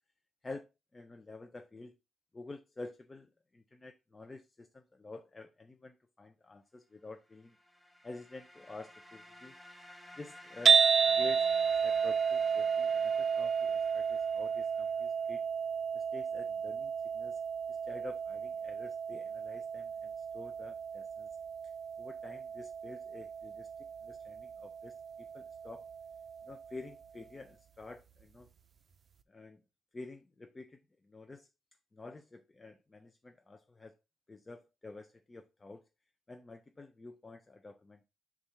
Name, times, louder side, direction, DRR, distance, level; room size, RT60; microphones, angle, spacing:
voice 1, 0.4-1.9 2.3-7.5 8.0-9.5 10.2-10.8 11.2-11.5 11.8-15.4 15.9-17.4 17.7-21.3 22.0-24.9 25.3-25.9 26.4-28.5 29.3-29.6 29.9-30.8 31.0-31.5 31.9-33.9 34.3-35.8 36.3-38.1, left 3 dB, 20° left, 0.5 m, -49 dB
sound 1, 7.3-15.0, left 1 dB, ahead, 1.1 m, -54 dB
sound 2, 10.7-26.9, right 6 dB, 45° right, 0.5 m, -32 dB
6.9 x 2.5 x 5.5 m
cardioid pair, 125°, 0 cm